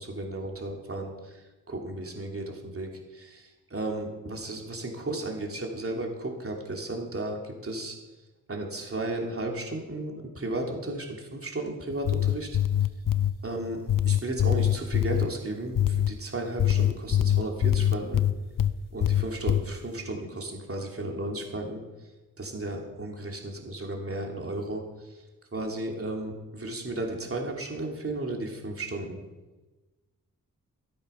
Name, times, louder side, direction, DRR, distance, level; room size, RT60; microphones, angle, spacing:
voice 1, 0.0-8.0 8.5-12.5 13.4-18.2 18.9-21.8 22.4-25.2 25.5-29.2, right 2 dB, 40° right, 0 dB, 2.9 m, -34 dB
sound 1, 11.9-13.3 13.9-15.3 15.8-16.1 16.6-18.7 19.0-19.6, left 11 dB, 70° left, 0.7 m, -23 dB
14.0 x 12.0 x 5.7 m, 1.2 s
cardioid pair, 70°, 34 cm